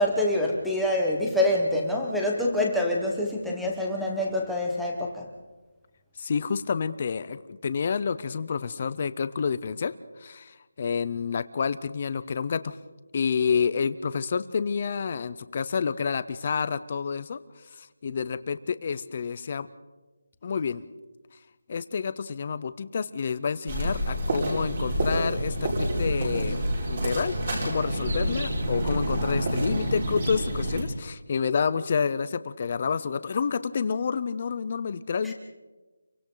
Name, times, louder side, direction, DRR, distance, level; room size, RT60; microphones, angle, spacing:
voice 1, 0.0-5.3 35.2-35.3, left 1 dB, ahead, -2 dB, 1.3 m, -26 dB
voice 2, 6.2-12.8 13.1-17.4 17.8-19.7 20.4-20.8 21.7-26.6 26.9-27.4 27.6-35.3, left 6 dB, 25° left, 14 dB, 0.6 m, -29 dB
sound 1, 23.7-30.8, right 1 dB, 30° right, 4.9 m, -28 dB
30.0 x 23.5 x 3.9 m, 1.2 s
figure-of-eight pair, 180°, 0 cm